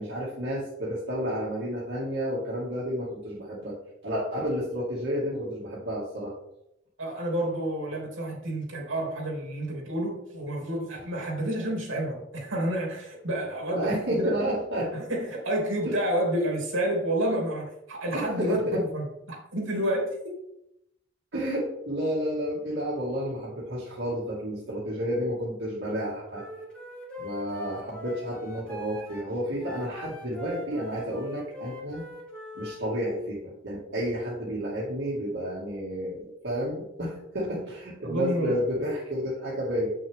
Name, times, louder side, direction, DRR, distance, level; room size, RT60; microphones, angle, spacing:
voice 1, 0.0-3.7 4.0-6.3 13.7-14.9 15.8-16.0 18.1-18.8 21.3-26.4 27.2-32.0 32.5-39.9, equal, 65° right, -7 dB, 2.1 m, -31 dB
voice 2, 7.0-14.4 14.9-20.1 38.0-38.6, right 1 dB, 85° right, -2 dB, 3.0 m, -29 dB
Wind instrument woodwind instrument, 26.3-32.8, left 1 dB, 5° left, 1.9 m, -42 dB
8.0 x 6.5 x 3.5 m, 0.81 s
head